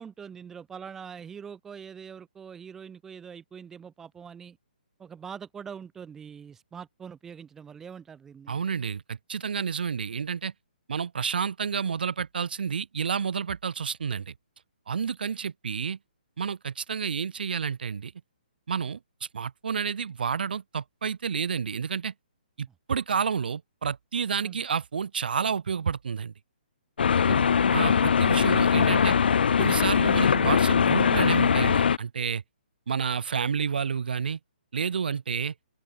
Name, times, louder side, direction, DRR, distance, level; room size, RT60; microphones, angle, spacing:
voice 1, 0.0-4.6 5.0-8.6 24.4-24.6 27.2-27.7, right 7 dB, 5° right, 0.4 m, -43 dB
voice 2, 8.5-10.5 10.9-14.3 14.9-16.0 16.4-18.1 18.7-19.0 19.3-22.1 22.6-26.3 27.3-27.4 27.7-29.2 29.6-32.4 32.9-34.4 34.7-35.5, right 6 dB, 70° right, 0.7 m, -30 dB
sound 1, 27.0-32.0, left 7 dB, 80° left, 0.3 m, -21 dB
open air
hypercardioid pair, 165°, 5 cm